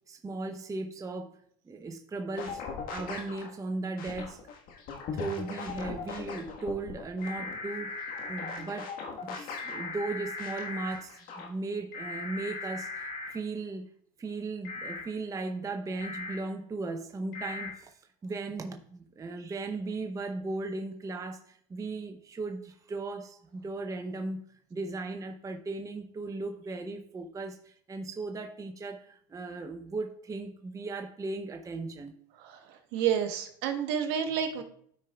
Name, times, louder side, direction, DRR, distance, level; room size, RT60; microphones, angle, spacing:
voice 1, 0.1-1.4 1.7-2.6 2.9-4.4 5.1-8.0 8.3-13.9 14.2-24.4 24.7-32.1, right 3 dB, 20° right, 0.6 m, -37 dB
sound 1, 2.3-3.5 4.0-9.9 10.4-11.5, left 5 dB, 55° left, 1.5 m, -40 dB
sound 2, 7.2-8.6 9.6-10.9 11.9-13.3 14.6-15.0 16.0-16.3 17.3-17.7, left 3 dB, 70° left, 3.3 m, -38 dB
voice 2, 32.4-34.6, right 8 dB, 65° right, 1.2 m, -30 dB
13.0 x 4.6 x 2.3 m
supercardioid pair, 105°, 18 cm